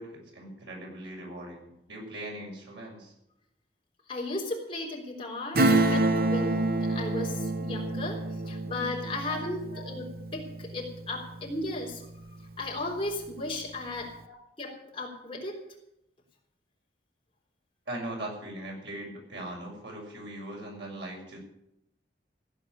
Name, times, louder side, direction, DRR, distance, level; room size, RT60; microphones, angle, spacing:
voice 1, 0.0-3.1 9.3-9.4 9.7-9.8 14.2-14.3 17.9-21.4, right 1 dB, 90° right, -1 dB, 6.8 m, -40 dB
voice 2, 4.1-12.1 12.6-14.1 14.6-15.6, left 2 dB, 30° left, 0 dB, 3.5 m, -35 dB
Acoustic guitar / Strum, 5.5-11.8 12.1-12.2, right 2 dB, 55° right, 1.0 m, -28 dB
16.0 x 7.9 x 9.8 m, 0.81 s
head